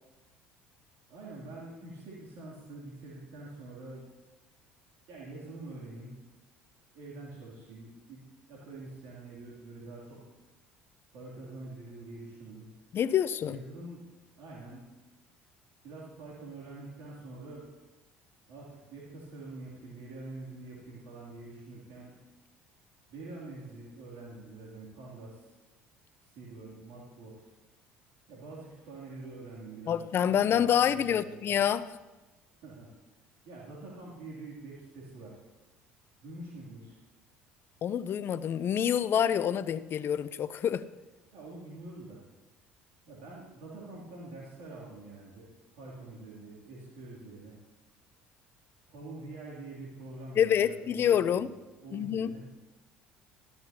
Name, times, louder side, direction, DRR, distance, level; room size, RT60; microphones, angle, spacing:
voice 1, 1.1-4.1 5.1-6.2 6.9-10.2 11.1-12.7 13.4-14.1 14.4-14.9 15.8-17.7 18.5-22.2 23.1-25.5 26.2-27.4 28.3-30.0 30.3-31.5 32.6-32.9 33.4-35.4 36.2-37.0 41.3-42.2 43.1-47.6 48.9-51.5 51.8-52.4, right 2 dB, 65° right, -5 dB, 3.0 m, -46 dB
voice 2, 12.9-13.6 29.9-32.0 37.8-40.9 50.4-51.5 51.9-52.3, left 9 dB, 45° left, 16 dB, 0.5 m, -27 dB
13.5 x 12.0 x 2.9 m, 1.1 s
hypercardioid pair, 65°, 5 cm